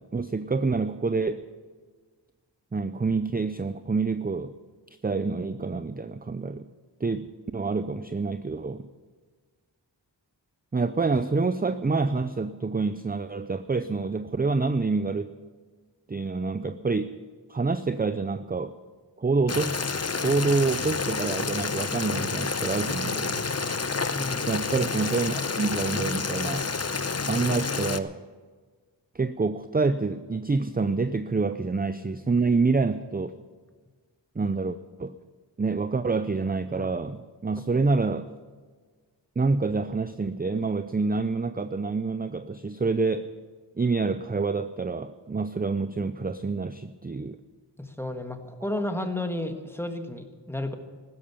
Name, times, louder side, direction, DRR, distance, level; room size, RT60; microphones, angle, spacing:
voice 1, 0.0-1.4 2.7-4.5 5.0-6.7 7.0-8.9 10.7-15.3 16.1-17.2 17.5-18.8 19.2-19.8 20.2-23.5 24.5-26.7 27.2-28.2 29.1-33.3 34.4-35.2 35.6-38.3 39.4-43.3 43.8-47.4, right 4 dB, 20° right, 12 dB, 0.5 m, -27 dB
Boiling, 19.5-28.0, left 4 dB, 35° left, 0.7 m, -29 dB
voice 2, 24.1-24.5 47.8-50.8, left 1 dB, 5° left, 6 dB, 1.6 m, -32 dB
15.5 x 12.5 x 7.0 m, 1.5 s
wide cardioid pair, 65°, 44 cm